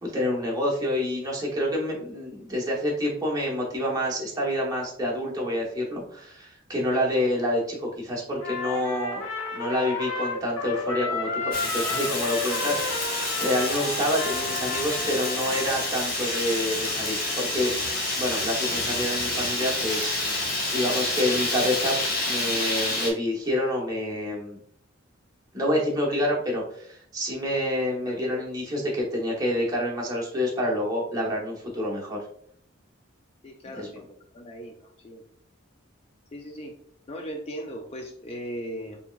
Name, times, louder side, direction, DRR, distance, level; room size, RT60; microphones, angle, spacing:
voice 1, 0.0-9.2 9.5-17.7 18.2-22.0 22.3-24.6 25.5-32.2 33.6-33.9, left 1 dB, 20° right, -3 dB, 1.0 m, -28 dB
Trumpet, 8.4-16.0, left 4 dB, 80° left, 1.0 m, -32 dB
Fire, 11.5-23.1, left 2 dB, 45° left, 1.0 m, -28 dB
voice 2, 33.4-34.0 34.3-34.7 35.0-35.2 36.3-36.7 37.1-39.0, equal, 30° left, 3 dB, 0.3 m, -37 dB
4.4 x 3.3 x 2.3 m, 0.62 s
head